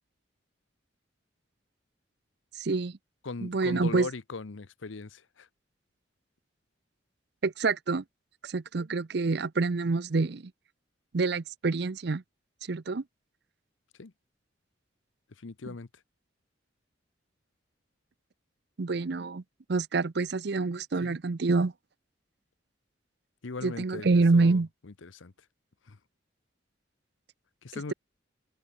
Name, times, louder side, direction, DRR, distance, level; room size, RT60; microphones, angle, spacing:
voice 1, 2.6-3.0 3.4-4.1 7.4-8.0 8.4-10.5 11.1-12.2 12.7-13.0 15.7-15.8 18.8-19.4 19.7-21.7 23.6-24.7, right 3 dB, 55° right, 0.6 m, -27 dB
voice 2, 3.2-5.5 14.0-14.1 15.4-15.9 21.0-21.2 23.4-24.1 24.3-25.3 25.9-26.0 27.6-27.9, left 3 dB, 80° left, 0.8 m, -39 dB
head